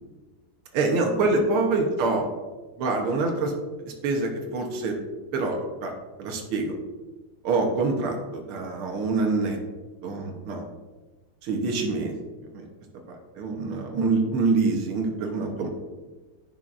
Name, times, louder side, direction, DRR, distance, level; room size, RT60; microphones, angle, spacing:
voice 1, 0.7-2.3 2.8-3.5 3.9-5.0 5.3-5.9 6.2-6.7 7.4-9.6 10.0-10.6 11.4-12.2 12.5-12.7 13.1-15.7, right 3 dB, 85° right, 2 dB, 1.9 m, -25 dB
10.5 x 7.4 x 2.5 m, 1.3 s
omnidirectional pair, 2.3 m